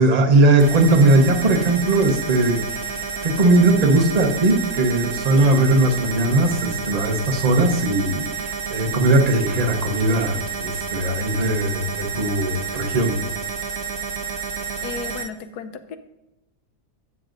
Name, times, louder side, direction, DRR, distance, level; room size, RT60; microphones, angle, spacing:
voice 1, 0.0-3.0 3.2-13.2, right 2 dB, 30° right, 4 dB, 0.9 m, -19 dB
sound 1, 0.6-15.2, right 6 dB, 75° right, 1.9 m, -30 dB
voice 2, 14.8-16.0, left 6 dB, 85° left, 10 dB, 1.2 m, -34 dB
12.0 x 7.5 x 2.6 m, 0.95 s
omnidirectional pair, 1.6 m